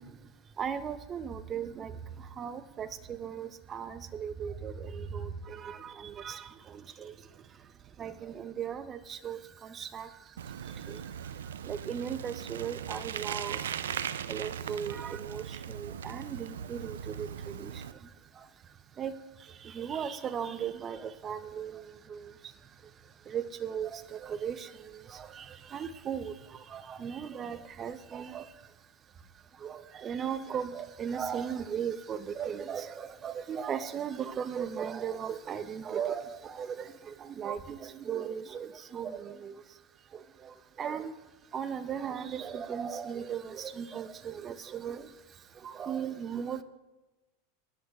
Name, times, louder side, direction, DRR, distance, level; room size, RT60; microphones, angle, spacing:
voice 1, 0.0-13.9 14.2-46.6, right 8 dB, 30° right, 13 dB, 0.7 m, -38 dB
Bicycle, 10.4-17.9, right 8 dB, 80° right, 0.4 m, -39 dB
20.5 x 11.0 x 2.4 m, 1.1 s
hypercardioid pair, 95°, 0 cm